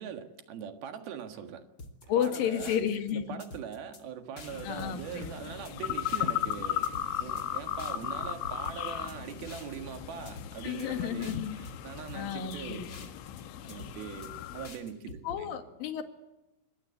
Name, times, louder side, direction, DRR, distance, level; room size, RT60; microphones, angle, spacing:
voice 1, 0.0-1.6 2.2-2.8 3.1-6.9 7.2-12.8 13.5-15.6, right 8 dB, 60° right, 7 dB, 3.1 m, -42 dB
sound 1, 1.3-1.4 2.0-2.4 4.2-4.3 4.9-5.4 5.8-6.6, right 2 dB, 85° right, 8.7 m, -54 dB
sound 2, 1.8-3.1 3.4-4.0 4.4-6.6 6.8-7.4 7.8-10.0 10.3-10.9 11.2-13.4 13.7-14.3 14.6-15.4, left 3 dB, 35° left, 1.9 m, -47 dB
voice 2, 2.1-3.2 4.6-5.3 10.6-11.6 12.1-13.1 15.2-16.0, left 9 dB, 55° left, 7 dB, 3.1 m, -32 dB
sound 3, 4.5-14.7, left 12 dB, 75° left, 3.4 m, -36 dB
27.0 x 21.5 x 8.4 m, 0.98 s
omnidirectional pair, 5.7 m